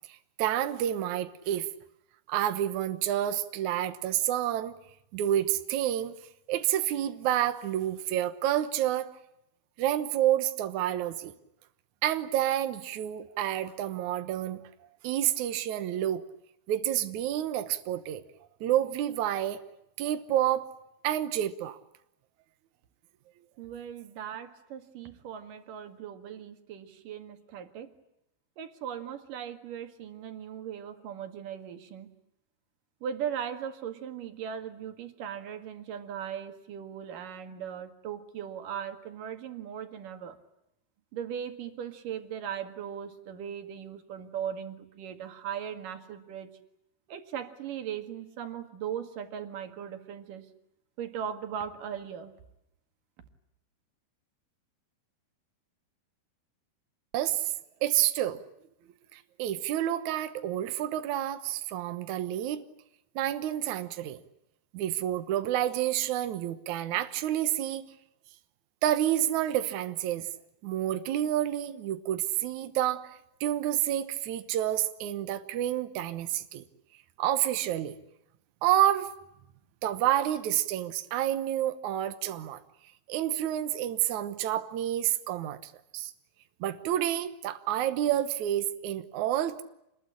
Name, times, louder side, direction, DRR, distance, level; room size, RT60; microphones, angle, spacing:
voice 1, 0.1-1.7 2.3-4.8 5.1-6.2 6.5-9.1 9.8-11.3 12.0-14.6 15.0-16.2 16.7-18.2 18.6-19.6 20.0-20.7 21.0-21.8 57.1-57.5 57.8-58.4 59.1-62.6 63.2-64.2 64.7-67.9 68.8-70.3 70.6-73.1 73.4-76.6 77.2-77.9 78.6-79.1 79.8-82.6 83.1-86.1 86.6-89.6, right 12 dB, 75° right, 10 dB, 1.8 m, -29 dB
voice 2, 23.6-27.9 28.6-32.1 33.0-40.4 41.1-46.5 47.1-50.5 51.0-52.3, right 8 dB, 55° right, 8 dB, 3.1 m, -38 dB
27.0 x 21.0 x 9.9 m, 0.85 s
omnidirectional pair, 5.0 m